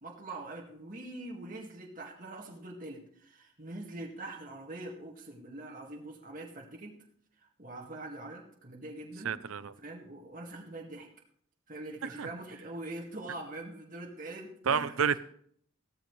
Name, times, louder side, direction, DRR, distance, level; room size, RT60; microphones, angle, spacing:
voice 1, 0.0-6.9 7.6-9.4 9.8-11.1 11.7-14.9, right 2 dB, 40° right, 2.1 m, -43 dB
voice 2, 9.2-9.7 12.0-12.3 14.7-15.2, right 6 dB, 85° right, 0.6 m, -30 dB
16.0 x 13.0 x 3.3 m
head